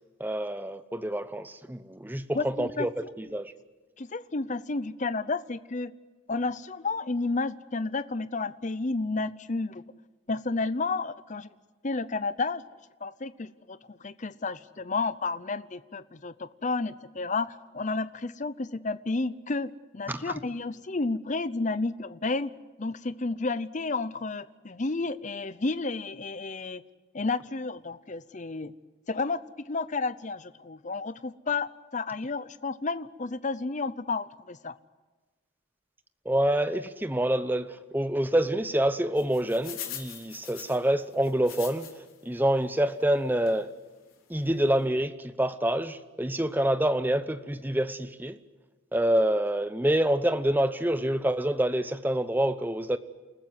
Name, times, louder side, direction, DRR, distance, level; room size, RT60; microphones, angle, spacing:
voice 1, 0.2-2.9 3.2-3.5 20.1-20.3 36.3-41.9 42.2-43.7 44.3-48.4 48.9-53.0, right 1 dB, 10° right, 0.8 m, -27 dB
voice 2, 2.3-2.9 4.0-5.9 6.3-9.8 10.3-11.5 11.8-12.6 13.0-22.5 22.8-26.8 27.1-28.7 29.1-34.7, left 3 dB, 35° left, 0.7 m, -31 dB
sound 1, 39.2-42.2 42.6-42.7 43.5-43.6 44.1-44.2 44.4-44.6, left 10 dB, 80° left, 3.6 m, -42 dB
29.0 x 14.5 x 9.4 m
head